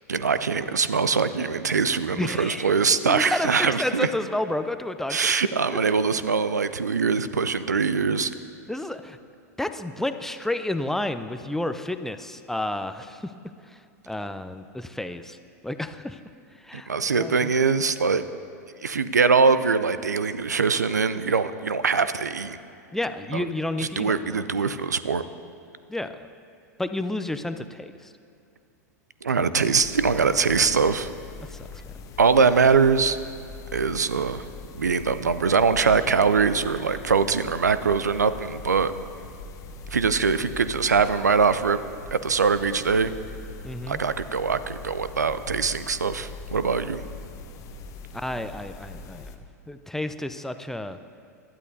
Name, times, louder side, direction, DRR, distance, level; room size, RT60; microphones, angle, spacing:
voice 1, 0.1-4.1 5.1-8.3 16.7-18.2 18.8-22.6 23.3-23.4 24.0-25.2 29.2-31.1 32.2-33.2 33.7-34.4 34.8-38.9 39.9-41.8 42.1-43.1 43.9-47.0, right 5 dB, 80° right, 13 dB, 0.4 m, -22 dB
voice 2, 2.1-5.3 8.7-9.2 9.6-13.3 13.6-15.4 15.6-16.2 16.5-17.5 22.9-24.4 25.9-26.3 26.8-28.1 31.5-31.9 43.6-44.0 48.1-49.4 49.7-51.0, left 1 dB, 5° left, 10 dB, 0.5 m, -31 dB
sound 1, 29.7-49.4, left 3 dB, 35° left, 0.9 m, -42 dB
20.0 x 12.5 x 2.7 m, 2.4 s
figure-of-eight pair, 90°, 9 cm